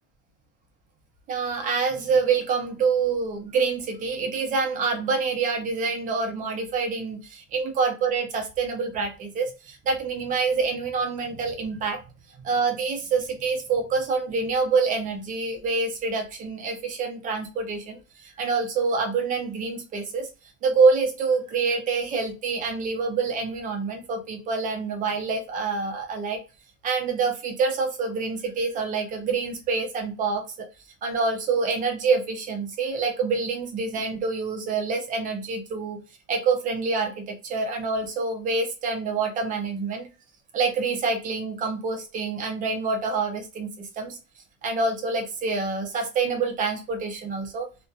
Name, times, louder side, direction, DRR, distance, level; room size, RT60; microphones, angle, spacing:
voice 1, 1.3-12.0 12.4-20.3 20.6-26.4 26.8-30.7 31.0-36.0 36.3-40.1 40.5-44.2 44.6-47.7, right 4 dB, 25° right, 3 dB, 0.4 m, -26 dB
2.7 x 2.1 x 2.2 m, 0.31 s
cardioid pair, 175°, 35 cm